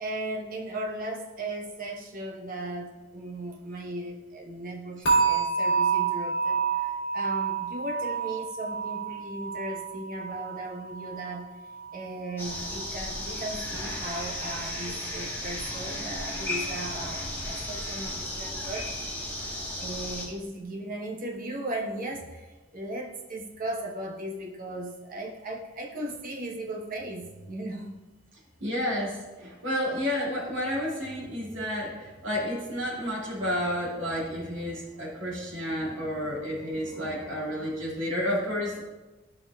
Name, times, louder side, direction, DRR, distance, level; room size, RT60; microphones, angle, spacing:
voice 1, 0.0-11.5 11.9-18.9 19.2-19.4 19.8-28.0 31.0-31.3 34.2-35.3 36.8-37.2, right 1 dB, 40° right, 0 dB, 1.0 m, -37 dB
sound 1, 5.0-12.1 12.4-12.8 13.3-13.4, right 5 dB, 50° left, 2.1 m, -29 dB
sound 2, 12.4-20.3, left 1 dB, 10° left, 1.3 m, -34 dB
voice 2, 28.6-38.8, equal, 60° right, -5 dB, 2.3 m, -31 dB
12.0 x 5.3 x 2.3 m, 1.2 s
head